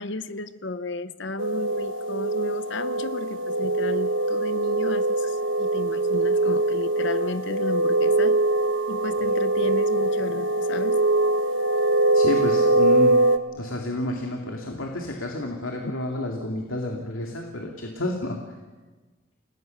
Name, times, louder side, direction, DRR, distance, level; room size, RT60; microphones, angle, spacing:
voice 1, 0.0-8.4 8.9-11.0, left 2 dB, 60° left, 12 dB, 0.8 m, -34 dB
sound 1, 1.4-13.4, right 2 dB, 70° right, 1.4 m, -22 dB
voice 2, 12.1-13.2 13.5-18.4, left 1 dB, 85° left, 1 dB, 2.5 m, -30 dB
29.5 x 19.5 x 6.7 m, 1.3 s
head